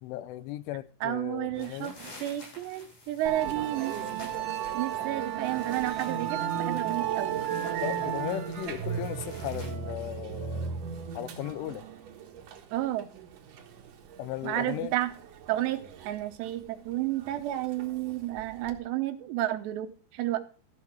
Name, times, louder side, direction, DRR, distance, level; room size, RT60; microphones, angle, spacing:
voice 1, 0.0-2.0 7.8-10.7 11.1-11.8 14.2-14.9, left 13 dB, 90° left, 3.2 m, -36 dB
voice 2, 1.0-4.0 4.7-7.3 12.7-13.1 14.4-15.1 15.5-20.4, right 14 dB, 75° right, 2.8 m, -31 dB
sound 1, 1.5-9.7, left 1 dB, 45° left, 9.3 m, -51 dB
Musical instrument, 3.3-18.8, right 9 dB, 60° right, 2.4 m, -35 dB
15.5 x 6.8 x 4.6 m
omnidirectional pair, 5.4 m